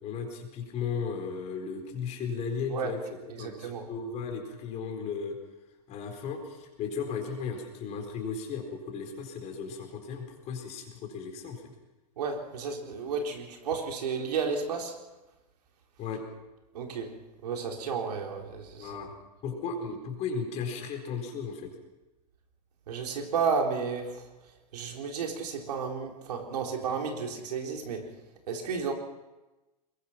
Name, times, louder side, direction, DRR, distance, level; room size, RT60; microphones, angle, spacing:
voice 1, 0.0-3.0 3.4-5.4 5.9-11.6 16.0-16.2 18.8-19.1 19.4-21.7, left 5 dB, 35° left, 3 dB, 4.3 m, -35 dB
voice 2, 3.3-3.9 12.2-15.0 16.7-17.1 17.4-19.0 22.9-24.3 24.7-28.1 28.5-28.9, right 5 dB, 80° right, 2 dB, 3.9 m, -32 dB
22.0 x 21.5 x 5.9 m, 1.1 s
supercardioid pair, 140°, 20 cm